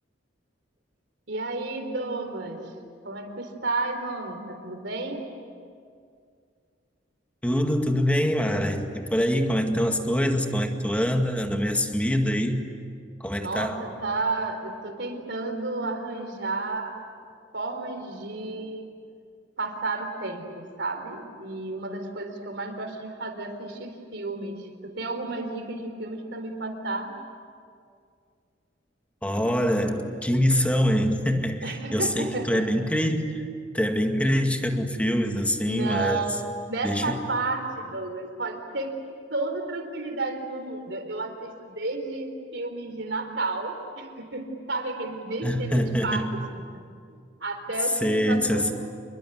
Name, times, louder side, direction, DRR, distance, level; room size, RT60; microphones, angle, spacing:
voice 1, 1.3-2.7 3.0-5.2 13.4-17.0 17.5-18.9 19.6-27.1 31.6-32.7 35.6-39.0 39.3-46.4 46.7-46.8 47.1-48.7, right 3 dB, 65° right, 5 dB, 4.1 m, -32 dB
voice 2, 7.4-12.6 13.2-13.8 29.2-33.4 33.7-36.3 36.8-37.2 45.4-46.4 48.0-48.7, equal, 5° left, 4 dB, 2.0 m, -24 dB
28.0 x 22.5 x 9.5 m, 2.2 s
head